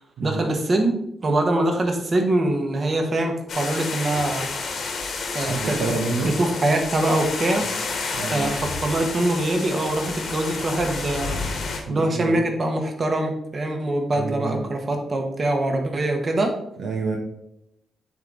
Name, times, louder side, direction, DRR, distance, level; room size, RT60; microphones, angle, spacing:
voice 1, 0.2-0.9 1.2-4.5 5.3-5.8 6.4-7.7 8.3-11.4 11.9-16.6, right 1 dB, 45° right, 3 dB, 1.5 m, -23 dB
sound 1, 3.5-11.8, left 4 dB, 65° left, 1.4 m, -30 dB
voice 2, 5.5-6.3 8.1-8.5 11.9-12.4 14.1-14.7 16.8-17.2, right 3 dB, 80° right, 0 dB, 0.8 m, -28 dB
9.0 x 3.4 x 4.0 m, 0.82 s
supercardioid pair, 50°, 0 cm